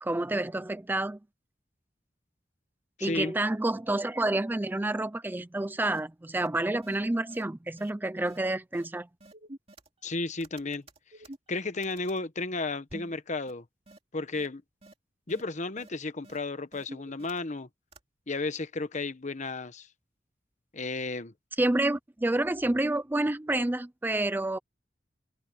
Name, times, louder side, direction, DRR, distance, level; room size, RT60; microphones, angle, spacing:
voice 1, 0.0-1.2 3.0-9.1 21.6-24.6, right 2 dB, 10° right, 0.4 m, -29 dB
voice 2, 3.0-3.3 10.0-10.8 11.5-13.6 14.1-14.6 15.3-17.7 18.3-19.9 20.7-21.3, left 3 dB, 45° left, 1.1 m, -33 dB
sound 1, 5.9-6.0 6.3-6.5 6.8-7.0 7.3-7.4 7.8-7.9 8.3-8.4 8.7-8.9 9.2-10.1 10.4-12.2 12.9-13.2 13.5-13.6 13.9-14.0 14.3-14.5 14.8-14.9 15.3-15.4 15.8-15.9 16.2-16.4 16.7-17.6 17.9-18.0, right 1 dB, 35° right, 2.5 m, -49 dB
head